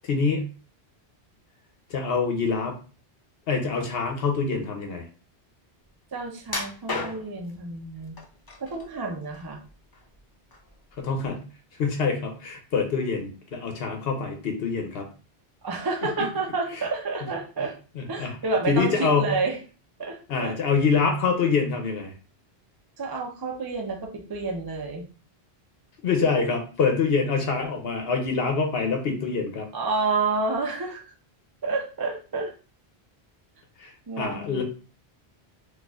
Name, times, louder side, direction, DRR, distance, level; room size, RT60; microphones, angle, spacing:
voice 1, 0.0-0.4 1.9-2.8 3.5-5.1 11.0-11.4 11.8-15.1 16.0-16.1 16.7-16.8 17.6-17.7 17.9-18.4 18.7-19.3 20.3-22.1 26.0-29.7 33.8-34.6, left 5 dB, 70° left, 3 dB, 0.8 m, -25 dB
voice 2, 6.1-8.2 8.6-9.6 15.6-17.7 18.1-19.6 20.0-20.5 23.0-25.0 29.7-31.0 31.6-32.5 34.1-34.6, right 3 dB, 30° right, 1 dB, 0.4 m, -29 dB
sound 1, 6.5-7.5 8.2-8.8 9.2-10.2 10.5-10.7 11.2-11.3, left 3 dB, 35° left, 0.4 m, -33 dB
4.1 x 2.4 x 2.3 m, 0.36 s
omnidirectional pair, 1.1 m